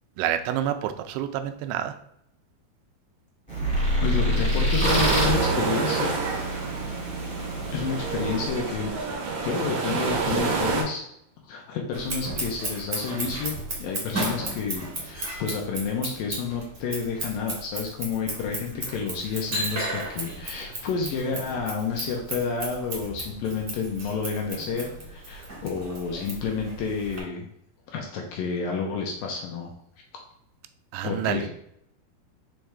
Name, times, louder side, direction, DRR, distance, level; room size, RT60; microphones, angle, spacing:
voice 1, 0.2-2.0 30.9-31.5, right 10 dB, 85° right, 9 dB, 2.6 m, -28 dB
sound 1, 3.5-8.5, right 1 dB, 5° left, 1.1 m, -27 dB
voice 2, 4.0-6.2 7.7-9.2 9.4-11.0 11.5-27.5 27.9-29.7 31.0-31.5, left 5 dB, 75° left, 0 dB, 2.2 m, -30 dB
sound 2, 4.8-10.8, right 4 dB, 65° right, 1.7 m, -28 dB
Scissors, 11.9-27.2, right 2 dB, 40° right, 1.3 m, -35 dB
6.5 x 4.5 x 3.4 m, 0.74 s
omnidirectional pair, 4.7 m